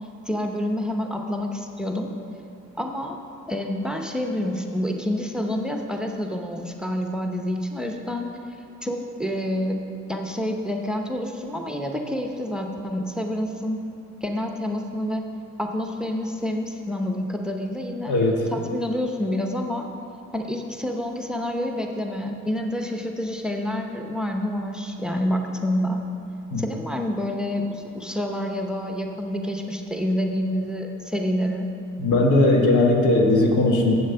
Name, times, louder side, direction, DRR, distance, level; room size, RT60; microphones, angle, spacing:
voice 1, 0.2-2.1 2.8-3.2 3.5-8.3 8.8-9.8 10.1-13.8 14.2-15.2 15.6-18.1 18.5-19.9 20.3-26.0 26.6-31.7, left 1 dB, 5° right, 3 dB, 0.7 m, -28 dB
voice 2, 18.1-18.4 26.5-26.6 32.0-33.9, left 2 dB, 80° left, 1 dB, 1.4 m, -18 dB
7.9 x 6.4 x 6.8 m, 2.7 s
cardioid pair, 90°, 30 cm